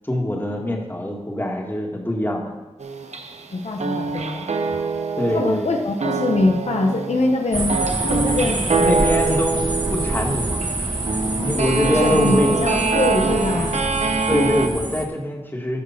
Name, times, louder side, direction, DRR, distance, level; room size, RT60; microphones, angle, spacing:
voice 1, 0.0-2.5 5.2-5.7 8.7-10.6 11.1-11.2 11.4-12.5 14.3-15.8, left 1 dB, 20° left, 0 dB, 2.1 m, -23 dB
sound 1, 2.8-3.5 3.8-14.7, right 4 dB, 85° right, 0.9 m, -25 dB
voice 2, 3.5-4.5 5.2-7.8 8.0-8.6 11.4-13.8, left 2 dB, 80° left, 2 dB, 1.0 m, -23 dB
sound 2, 7.5-15.0, right 2 dB, 45° right, 1.2 m, -26 dB
10.5 x 6.2 x 5.9 m, 1.1 s
cardioid pair, 45°, 11 cm